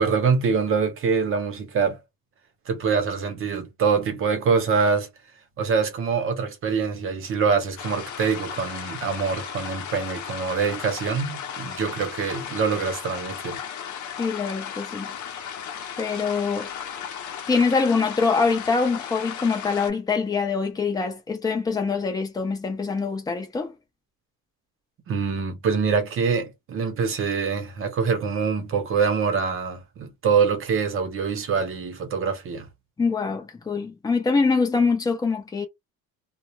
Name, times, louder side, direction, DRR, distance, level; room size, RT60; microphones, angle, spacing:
voice 1, 0.0-2.0 2.7-5.1 5.6-13.6 25.1-32.7, right 5 dB, 35° right, 0.7 m, -24 dB
sound 1, 7.8-19.9, left 8 dB, 50° left, 0.8 m, -35 dB
voice 2, 14.2-15.1 16.0-16.7 17.5-23.7 33.0-35.7, left 4 dB, 10° left, 0.5 m, -24 dB
2.3 x 2.1 x 2.9 m
cardioid pair, 165°, 37 cm